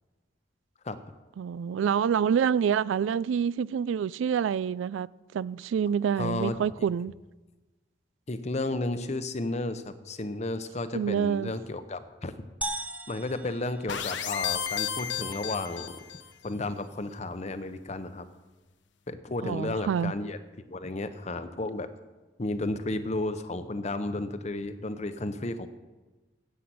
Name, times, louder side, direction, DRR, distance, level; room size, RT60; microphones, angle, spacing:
voice 1, 1.4-5.1 5.3-7.1 10.9-11.5 19.4-20.1, right 7 dB, 90° right, 0.3 m, -27 dB
voice 2, 6.2-6.6 8.3-12.4 13.1-16.0 16.4-18.3 19.1-20.4 20.7-21.9 22.4-25.7, left 2 dB, 35° left, 0.7 m, -33 dB
sound 1, 12.6-14.6, right 2 dB, 5° right, 0.5 m, -38 dB
sound 2, 13.9-16.3, left 8 dB, 70° left, 0.9 m, -33 dB
10.0 x 8.5 x 7.7 m
head